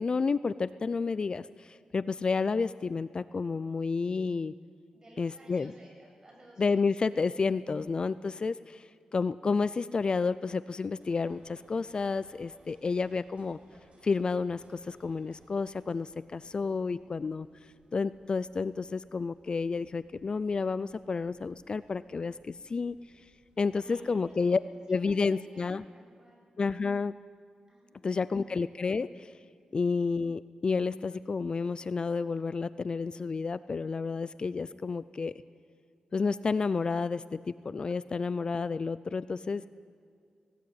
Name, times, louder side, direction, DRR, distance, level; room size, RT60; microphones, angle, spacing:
voice 1, 0.0-4.5 5.2-5.7 6.6-13.6 14.0-17.5 17.9-23.0 23.6-24.6 24.9-25.8 26.6-27.1 28.0-29.3 29.7-35.3 36.1-39.6, left 4 dB, 40° left, 16 dB, 0.4 m, -30 dB
voice 2, 4.9-6.8 23.7-24.6 24.9-26.4 27.7-28.5 29.6-29.9, right 1 dB, 30° right, -1 dB, 7.5 m, -57 dB
sound 1, 11.0-24.5, right 2 dB, 65° right, 3.8 m, -63 dB
18.5 x 18.5 x 8.8 m, 2.2 s
wide cardioid pair, 100°, 2 cm